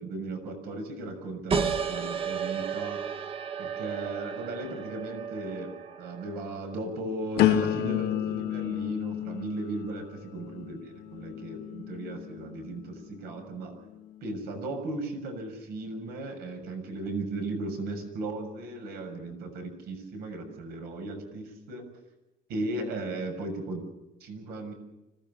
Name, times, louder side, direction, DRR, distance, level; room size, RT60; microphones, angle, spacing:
voice 1, 0.0-3.0 3.6-13.8 14.2-21.9 22.5-23.8 24.2-24.7, right 2 dB, 75° right, 6 dB, 6.6 m, -36 dB
sound 1, 1.5-6.7, right 6 dB, 35° right, 1.7 m, -33 dB
sound 2, 7.4-13.2 13.8-14.2, left 12 dB, 85° left, 1.6 m, -31 dB
25.5 x 18.0 x 7.0 m, 0.99 s
cardioid pair, 145°, 16 cm